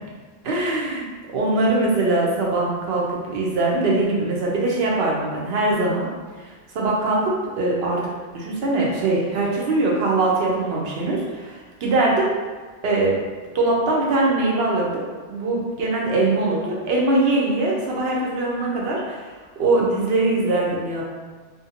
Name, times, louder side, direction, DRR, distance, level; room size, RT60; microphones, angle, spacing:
voice 1, 0.4-1.1 1.3-6.1 6.7-8.0 8.3-12.3 12.8-13.2 13.5-15.0 15.3-19.3 19.6-21.0, right 2 dB, 80° right, -3 dB, 0.9 m, -22 dB
2.5 x 2.2 x 2.8 m, 1.4 s
omnidirectional pair, 1.0 m